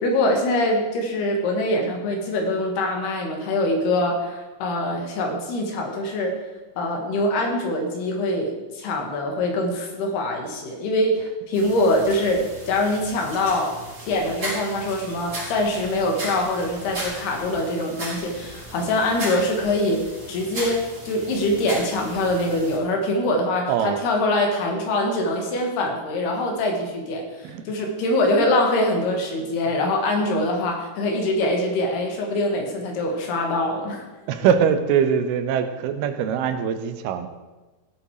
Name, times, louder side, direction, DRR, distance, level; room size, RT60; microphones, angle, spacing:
voice 1, 0.0-6.3 6.8-12.4 12.7-13.8 14.1-20.0 20.3-34.0, left 1 dB, 80° left, 2 dB, 4.0 m, -24 dB
sound 1, 11.5-22.8, right 1 dB, 30° right, 5.4 m, -36 dB
voice 2, 23.7-24.1 27.4-27.6 28.1-28.2 29.4-29.5 31.0-31.2 34.3-37.3, right 8 dB, 80° right, 9 dB, 2.8 m, -23 dB
16.5 x 8.1 x 4.9 m, 1.2 s
omnidirectional pair, 4.5 m